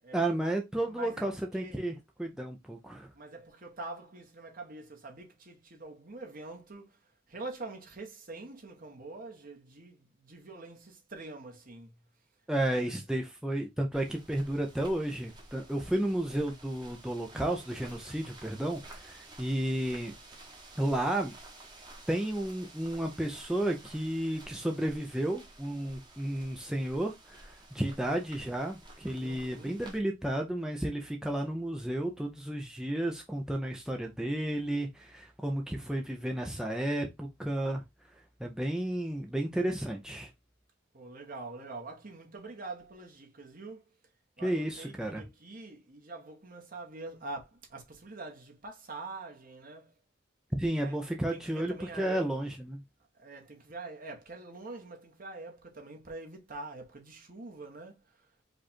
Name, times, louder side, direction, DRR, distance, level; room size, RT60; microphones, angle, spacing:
voice 1, 0.1-1.9 2.2-3.1 12.5-20.2 20.8-21.3 22.1-37.8 38.4-40.3 44.4-45.2 50.6-52.8, right 1 dB, 5° right, 0.5 m, -32 dB
voice 2, 0.9-1.3 1.6-1.8 3.1-11.9 26.4-26.5 29.2-29.8 40.9-43.8 44.4-49.9 50.8-51.0 51.3-52.3 53.1-58.3, right 3 dB, 45° right, 1.3 m, -45 dB
sound 1, 13.9-30.0, right 2 dB, 20° right, 1.2 m, -52 dB
5.0 x 2.5 x 4.2 m
head